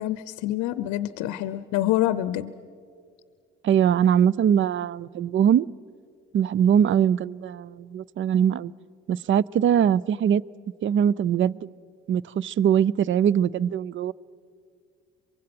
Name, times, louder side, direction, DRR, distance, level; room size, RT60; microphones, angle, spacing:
voice 1, 0.0-2.5, left 14 dB, 70° left, 0.7 m, -26 dB
voice 2, 3.6-5.7 6.3-8.7 9.1-10.4 10.8-11.7 12.1-14.1, right 9 dB, 40° right, 0.5 m, -22 dB
23.5 x 22.5 x 6.0 m
hypercardioid pair, 55°, 30 cm